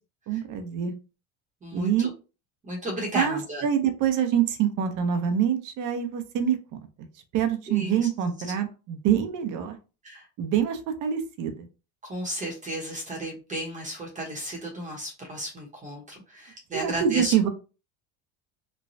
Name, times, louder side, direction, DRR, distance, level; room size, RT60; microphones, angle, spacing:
voice 1, 0.3-0.9 1.7-2.1 3.1-6.6 7.0-7.1 7.3-9.8 10.4-11.7 16.7-17.5, right 9 dB, 50° right, 7 dB, 0.7 m, -25 dB
voice 2, 1.6-2.1 2.6-3.6 7.7-8.1 8.4-8.5 10.0-10.3 12.0-17.5, right 1 dB, 20° right, -2 dB, 0.9 m, -34 dB
3.1 x 2.2 x 2.6 m, 0.32 s
supercardioid pair, 125°, 39 cm